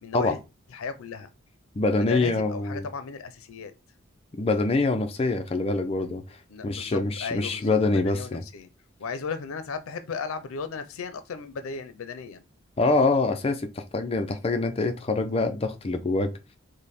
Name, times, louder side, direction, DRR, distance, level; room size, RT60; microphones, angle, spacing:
voice 1, 0.0-0.4 0.7-1.3 2.0-3.7 6.5-8.7 9.0-12.4, left 5 dB, 90° left, 0.5 m, -35 dB
voice 2, 1.8-2.9 4.3-6.2 6.6-8.4 12.8-16.3, left 3 dB, 30° left, 0.4 m, -25 dB
5.1 x 2.1 x 4.1 m
head